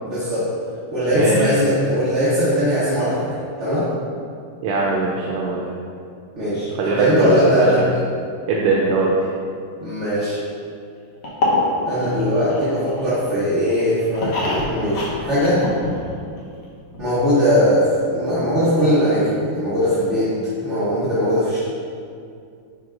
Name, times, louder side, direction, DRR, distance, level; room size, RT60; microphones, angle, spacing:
voice 1, 0.0-0.5 0.9-3.3 3.6-3.9 6.3-7.8 9.8-10.4 11.8-15.6 17.0-20.3 20.6-21.6, equal, 35° right, -12 dB, 1.6 m, -19 dB
voice 2, 1.1-1.5 4.6-5.6 6.8-7.9 8.5-9.3, right 3 dB, 85° right, -3 dB, 1.6 m, -21 dB
sound 1, 11.2-13.3 13.7-16.4 16.6-16.7 16.9-17.0, left 2 dB, 90° left, 2.1 m, -25 dB
9.1 x 5.2 x 2.5 m, 2.3 s
omnidirectional pair, 2.4 m